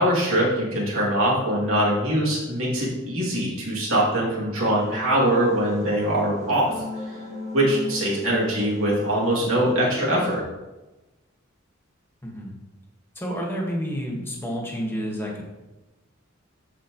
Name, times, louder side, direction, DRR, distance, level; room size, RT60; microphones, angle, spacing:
voice 1, 0.0-6.7 7.5-10.4, right 1 dB, 80° right, -5 dB, 2.6 m, -22 dB
sound 1, 4.6-10.4, left 2 dB, 35° right, 1.6 m, -37 dB
voice 2, 12.2-12.5 13.1-15.4, equal, 10° left, -2 dB, 1.6 m, -30 dB
12.5 x 4.7 x 3.1 m, 1.1 s
head